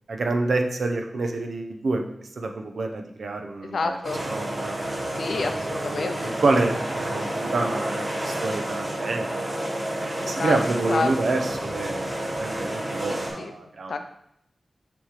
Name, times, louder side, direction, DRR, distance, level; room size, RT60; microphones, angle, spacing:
voice 1, 0.1-2.0 2.4-9.6 10.0-13.9, right 3 dB, 80° right, 4 dB, 0.8 m, -28 dB
voice 2, 3.6-4.2 5.1-6.3 10.2-10.6 10.9-11.3 13.1-13.5 13.9-14.0, left 4 dB, 85° left, 7 dB, 0.6 m, -29 dB
sound 1, 4.0-13.3, right 1 dB, 35° right, 2.1 m, -30 dB
7.0 x 3.1 x 4.9 m, 0.75 s
wide cardioid pair, 90°, 0 cm